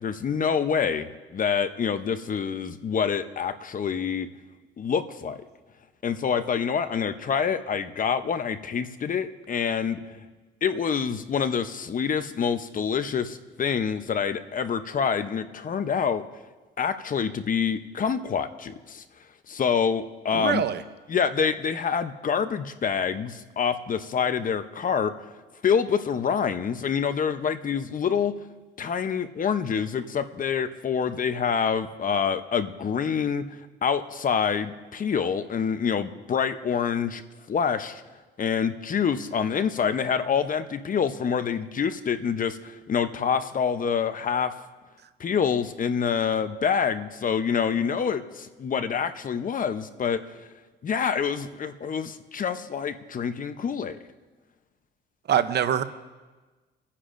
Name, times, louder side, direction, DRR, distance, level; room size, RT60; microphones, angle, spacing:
voice 1, 0.0-4.3 4.8-5.4 6.0-10.2 10.6-16.3 16.8-19.0 19.5-20.6 21.1-25.1 25.6-28.4 28.8-33.4 33.8-37.2 37.5-38.0 38.4-44.5 45.2-50.4 50.8-54.0, left 7 dB, 45° left, 10 dB, 0.8 m, -26 dB
voice 2, 20.3-20.8 55.3-55.8, right 9 dB, 55° right, 12 dB, 0.7 m, -23 dB
26.0 x 9.8 x 2.6 m, 1.3 s
cardioid pair, 90°, 20 cm